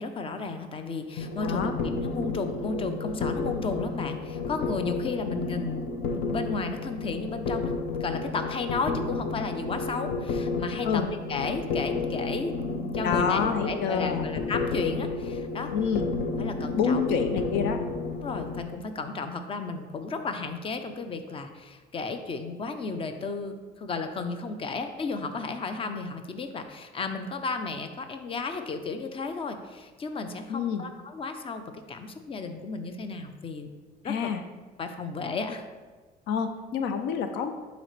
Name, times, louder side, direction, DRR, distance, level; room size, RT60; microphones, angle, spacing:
voice 1, 0.0-7.7 8.0-11.0 11.3-15.7 16.4-17.1 18.2-33.7 34.0-34.3 34.8-35.6, left 4 dB, 30° left, 7 dB, 0.7 m, -34 dB
sound 1, 1.2-18.6, left 3 dB, 65° left, 0.9 m, -31 dB
voice 2, 1.4-1.7 10.8-11.1 13.0-14.2 15.7-16.1 16.8-17.8 30.5-30.8 34.0-34.4 36.3-37.5, left 6 dB, 90° left, 8 dB, 0.6 m, -27 dB
11.0 x 4.0 x 3.3 m, 1.3 s
cardioid pair, 110°, 17 cm